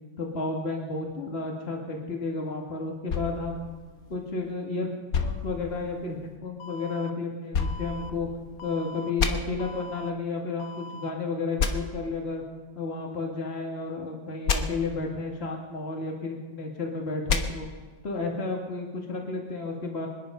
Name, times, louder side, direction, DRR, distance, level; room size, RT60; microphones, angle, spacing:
voice 1, 0.2-3.7 4.1-4.9 5.2-8.3 8.6-12.4 12.8-17.7 18.0-20.1, left 3 dB, 35° left, 1 dB, 2.4 m, -32 dB
sound 1, 3.1-4.5 5.1-6.3 7.5-8.7 9.2-9.3 11.6-11.7 14.5-14.6 17.3-17.4, left 5 dB, 55° left, 1.6 m, -29 dB
Alarm, 6.6-7.1 7.6-8.1 8.6-9.1 9.6-10.1 10.6-11.1, left 2 dB, 75° left, 1.4 m, -43 dB
25.5 x 10.5 x 5.3 m, 1.4 s
omnidirectional pair, 2.0 m